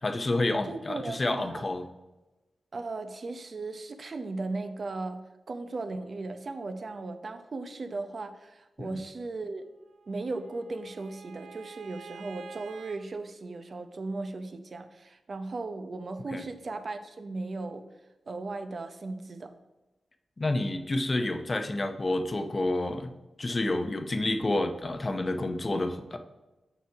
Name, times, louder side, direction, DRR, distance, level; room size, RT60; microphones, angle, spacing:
voice 1, 0.0-1.8 8.8-8.9 16.3-16.4 20.4-23.1 23.4-26.2, left 2 dB, 35° left, 7 dB, 0.7 m, -29 dB
voice 2, 0.7-1.7 2.7-9.6 10.1-17.9 18.3-19.5, right 3 dB, 50° right, 8 dB, 0.7 m, -37 dB
Bowed string instrument, 9.9-13.0, right 6 dB, 85° right, 0.7 m, -48 dB
7.0 x 6.1 x 4.7 m, 1.1 s
wide cardioid pair, 85°, 0 cm